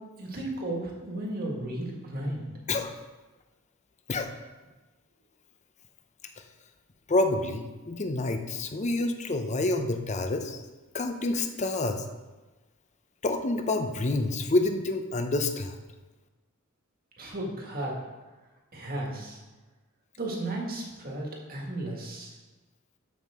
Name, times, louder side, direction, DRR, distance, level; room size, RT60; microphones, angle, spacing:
voice 1, 0.2-2.4 17.2-18.0 18.7-19.4 20.2-22.3, right 1 dB, 45° right, -1 dB, 1.9 m, -34 dB
voice 2, 7.1-10.6 10.9-12.0 13.2-15.8, left 2 dB, 35° left, 6 dB, 0.7 m, -28 dB
13.0 x 5.7 x 3.6 m, 1.2 s
head